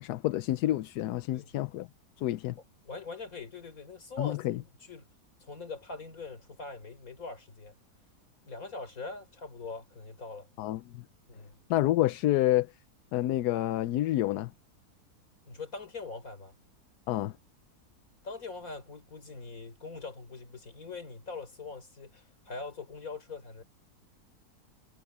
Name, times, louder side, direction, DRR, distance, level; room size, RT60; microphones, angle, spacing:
voice 1, 0.0-1.9 2.2-2.6 4.2-4.6 10.6-11.0 11.7-12.7 13.1-14.5 17.1-17.3, left 15 dB, 80° left, 1.1 m, -28 dB
voice 2, 2.9-4.4 4.8-5.1 5.4-7.7 8.4-10.5 11.3-11.6 15.4-16.5 18.2-23.6, left 4 dB, 60° left, 4.2 m, -42 dB
omnidirectional pair, 1.7 m